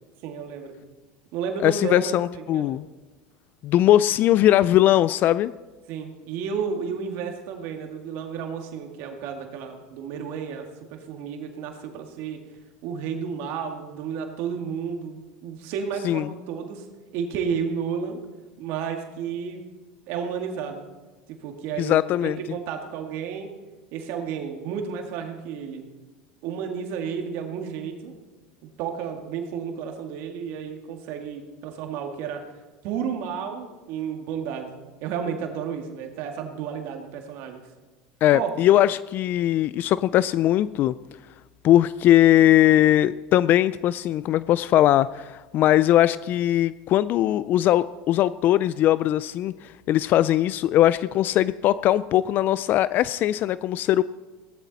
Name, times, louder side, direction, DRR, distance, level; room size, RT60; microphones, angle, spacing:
voice 1, 0.2-0.8 1.3-2.2 2.5-2.7 5.9-10.6 10.9-12.4 12.8-16.8 17.1-18.2 18.6-19.6 20.1-20.9 21.3-23.5 23.9-25.9 26.4-28.1 28.6-32.4 32.8-37.6 38.3-38.5, right 7 dB, 65° right, 4 dB, 2.1 m, -32 dB
voice 2, 1.6-2.9 3.6-5.5 16.0-16.2 21.8-22.4 38.2-40.9 41.6-54.0, left 13 dB, 45° left, 17 dB, 0.3 m, -20 dB
17.0 x 14.0 x 4.2 m, 1.2 s
supercardioid pair, 115°, 4 cm